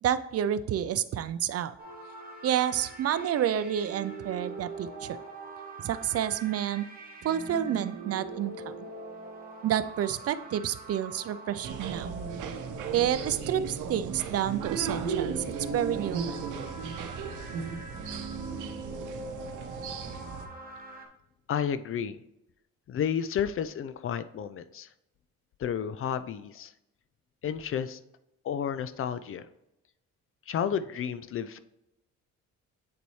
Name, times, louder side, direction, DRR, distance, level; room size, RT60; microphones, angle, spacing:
voice 1, 0.0-1.8 2.4-5.2 5.8-6.8 7.2-8.5 9.6-12.1 12.9-16.5, right 10 dB, 55° right, 14 dB, 0.4 m, -29 dB
sound 1, 1.8-21.1, right 3 dB, 30° right, 1.4 m, -43 dB
sound 2, 11.6-20.5, right 5 dB, 80° right, 0.8 m, -36 dB
voice 2, 21.5-22.2 22.9-24.9 25.6-26.7 27.4-28.0 28.4-29.5 30.5-31.6, left 8 dB, 45° left, 13 dB, 0.4 m, -31 dB
8.5 x 4.0 x 3.1 m, 0.89 s
cardioid pair, 90°, 30 cm